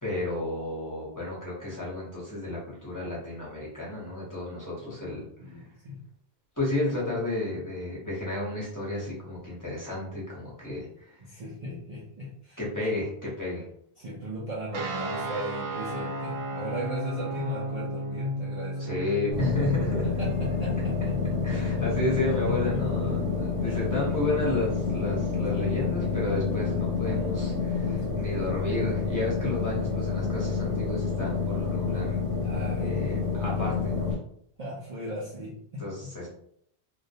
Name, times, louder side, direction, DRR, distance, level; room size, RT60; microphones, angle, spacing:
voice 1, 0.0-5.6 6.6-11.2 12.6-13.6 18.8-20.1 21.4-32.2 32.7-34.2 35.8-36.3, left 2 dB, 20° left, -6 dB, 0.8 m, -32 dB
voice 2, 5.4-6.0 11.2-12.6 14.0-19.0 19.3-19.5 20.0-21.9 22.4-23.1 23.7-23.8 27.7-28.7 32.4-33.3 34.6-36.3, equal, 50° right, -6 dB, 0.5 m, -38 dB
sound 1, 14.7-23.7, right 1 dB, 85° right, 0.9 m, -35 dB
sound 2, 19.3-34.1, left 5 dB, 65° right, 1.2 m, -28 dB
2.3 x 2.1 x 2.7 m, 0.66 s
omnidirectional pair, 1.1 m